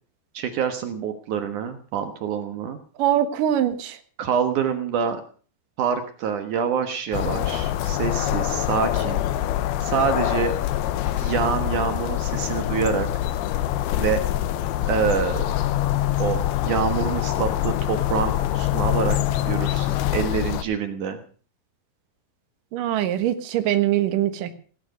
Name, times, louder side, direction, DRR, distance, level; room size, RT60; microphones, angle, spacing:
voice 1, 0.3-2.8 4.2-5.2 5.8-9.2 9.8-10.5 11.2-13.1 14.0-14.2 14.9-15.5 16.2-19.2 19.5-21.2, right 7 dB, 85° right, 7 dB, 1.7 m, -26 dB
voice 2, 3.0-4.0 22.7-24.6, right 11 dB, 65° right, 9 dB, 2.2 m, -22 dB
sound 1, 7.1-20.6, left 13 dB, 85° left, 2.2 m, -25 dB
18.0 x 11.5 x 6.6 m, 0.43 s
omnidirectional pair, 5.8 m